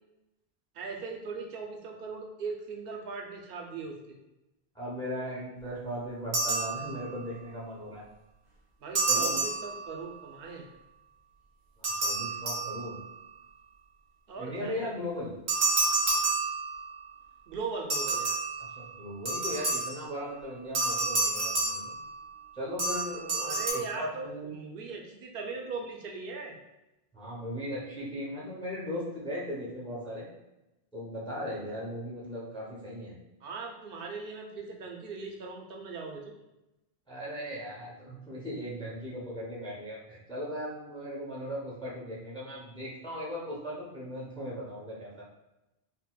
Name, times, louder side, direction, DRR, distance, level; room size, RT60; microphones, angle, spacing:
voice 1, 0.7-4.2 8.8-10.7 14.3-14.9 17.5-18.4 23.4-26.5 33.4-36.3, right 4 dB, 65° right, 1 dB, 0.7 m, -39 dB
voice 2, 4.7-8.0 9.1-9.4 11.8-13.0 14.4-15.3 18.8-21.9 22.6-24.5 27.1-30.3 30.9-33.2 37.1-45.2, equal, 5° left, -5 dB, 0.6 m, -38 dB
sound 1, 6.3-7.3 8.9-10.2 11.8-13.2 15.5-17.1 17.9-20.2 20.7-22.4 22.8-23.7, right 3 dB, 90° right, 1.1 m, -30 dB
4.2 x 2.1 x 2.2 m, 0.95 s
omnidirectional pair, 1.1 m